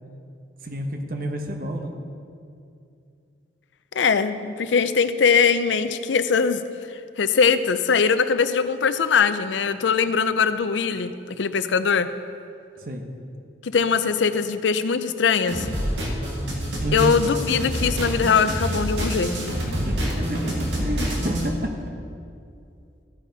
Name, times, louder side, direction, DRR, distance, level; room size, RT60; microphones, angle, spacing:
voice 1, 0.6-1.9 12.8-13.1 16.8-17.1 19.7-21.8, right 1 dB, 50° right, 4 dB, 1.0 m, -29 dB
voice 2, 3.9-6.6 7.2-12.1 13.6-15.7 16.9-19.3, left 6 dB, 85° left, 12 dB, 0.5 m, -21 dB
sound 1, 15.5-21.5, equal, 85° right, 1.9 m, -27 dB
14.0 x 9.1 x 4.0 m, 2.5 s
head